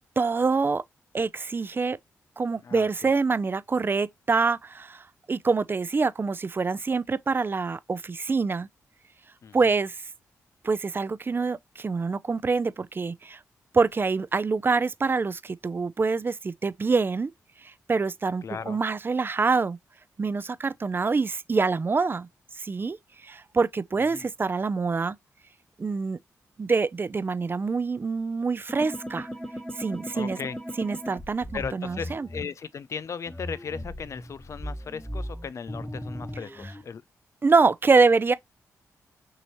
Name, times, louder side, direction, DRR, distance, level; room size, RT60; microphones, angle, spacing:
voice 1, 0.2-0.8 1.1-2.0 2.4-8.7 9.5-10.0 10.6-13.4 13.7-17.3 17.6-19.8 20.2-22.3 22.6-23.0 23.2-25.2 25.8-26.2 26.6-29.3 29.8-30.4 30.8-32.3 37.4-38.3, right 4 dB, 35° right, 0.5 m, -25 dB
voice 2, 2.6-3.1 9.4-9.6 18.4-18.8 24.1-24.3 30.1-30.6 31.5-37.0, left 6 dB, 55° left, 0.5 m, -37 dB
sound 1, 28.7-32.4 33.3-36.8, equal, 10° left, 1.4 m, -37 dB
6.2 x 2.8 x 3.0 m
cardioid pair, 55°, 6 cm